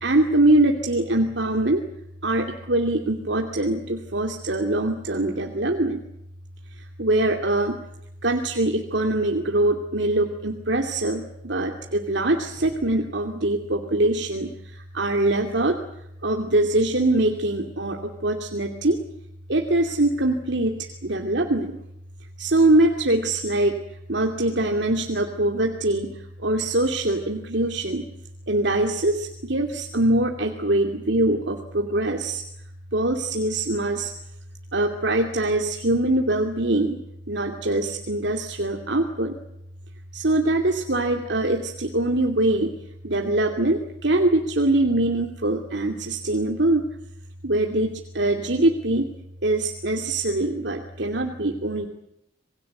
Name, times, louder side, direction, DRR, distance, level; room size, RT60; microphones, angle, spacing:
voice 1, 0.0-1.8 2.2-6.0 7.0-7.8 8.2-14.5 14.9-15.8 16.2-19.0 19.5-21.8 22.4-23.7 24.1-26.1 26.4-28.1 28.5-32.4 32.9-34.1 34.7-37.0 37.3-39.4 40.1-42.7 43.0-46.8 47.4-49.1 49.4-51.9, right 2 dB, 65° right, 3 dB, 2.6 m, -23 dB
28.0 x 21.5 x 8.0 m, 0.80 s
head